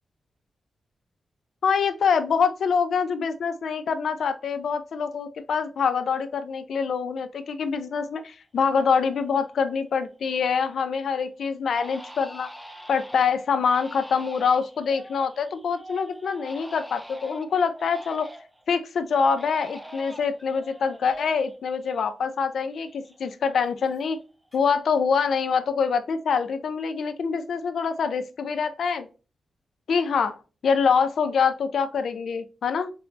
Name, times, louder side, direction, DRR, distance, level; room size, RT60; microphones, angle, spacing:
voice 1, 1.6-12.5 12.9-18.3 18.7-24.2 24.5-29.1 29.9-30.4 30.6-32.9, left 6 dB, 75° left, 9 dB, 0.4 m, -25 dB
Crying sobbing, 8.5-8.6 9.1-9.6 10.0-10.8 11.1-11.3 11.7-18.6 19.1-22.4 22.7-24.2 24.5-25.0, right 1 dB, 5° right, 0.4 m, -44 dB
4.3 x 2.2 x 2.5 m, 0.34 s
wide cardioid pair, 110°, 0 cm